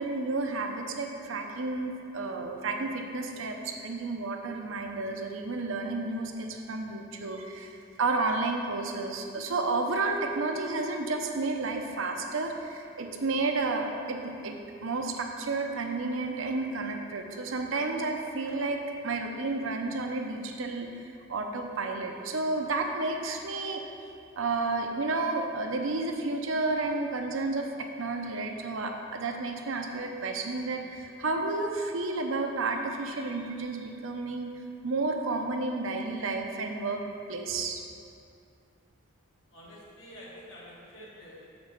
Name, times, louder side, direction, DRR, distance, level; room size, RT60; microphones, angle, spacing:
voice 1, 0.0-20.9 21.3-23.8 24.4-34.5 34.8-37.0 37.3-37.8, right 3 dB, 75° right, 3 dB, 0.7 m, -31 dB
voice 2, 39.5-41.5, equal, 70° left, -6 dB, 1.7 m, -48 dB
7.0 x 4.0 x 6.6 m, 2.5 s
head